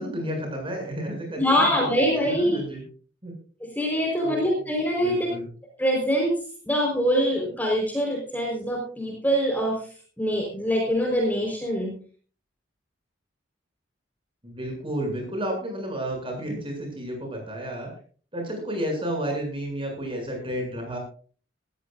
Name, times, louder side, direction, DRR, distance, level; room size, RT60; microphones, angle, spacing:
voice 1, 0.0-2.8 3.2-3.3 4.2-5.5 14.4-17.9 18.3-21.0, equal, 30° right, 2 dB, 7.6 m, -32 dB
voice 2, 1.4-2.6 3.6-5.3 5.8-6.4 6.6-9.8 10.2-11.9, equal, 10° left, 0 dB, 4.5 m, -24 dB
20.0 x 15.5 x 2.6 m, 0.41 s
head